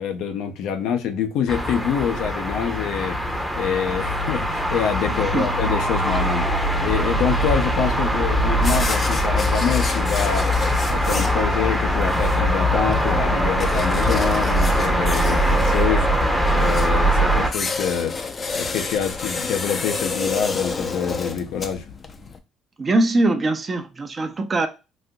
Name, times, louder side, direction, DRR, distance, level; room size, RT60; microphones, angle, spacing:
voice 1, 0.0-3.2 3.5-6.5 6.8-16.1 16.5-18.1 18.5-21.9, left 7 dB, 80° left, 0.6 m, -26 dB
sound 1, 1.5-17.5, equal, 5° left, 0.8 m, -21 dB
voice 2, 5.1-5.5 22.8-24.7, right 2 dB, 30° right, 0.7 m, -22 dB
sound 2, 8.5-22.4, left 4 dB, 35° left, 0.5 m, -31 dB
4.1 x 2.6 x 2.2 m
supercardioid pair, 90°, 0 cm